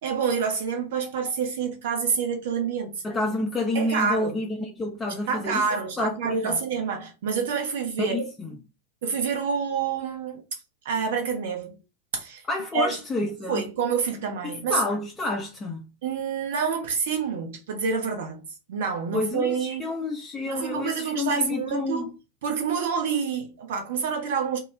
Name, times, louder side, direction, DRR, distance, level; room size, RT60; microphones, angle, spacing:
voice 1, 0.0-3.0 3.7-4.4 5.3-8.2 9.0-10.4 10.8-11.8 12.1-12.4 12.7-13.0 13.5-14.8 16.0-18.4 18.7-19.9 20.5-22.1 22.4-24.6, right 6 dB, 55° right, 0.7 m, -27 dB
voice 2, 3.0-6.6 8.0-8.6 12.5-13.7 14.4-15.8 19.1-22.0, left 2 dB, 15° left, 0.4 m, -29 dB
2.2 x 2.1 x 3.1 m
figure-of-eight pair, 90°, 0 cm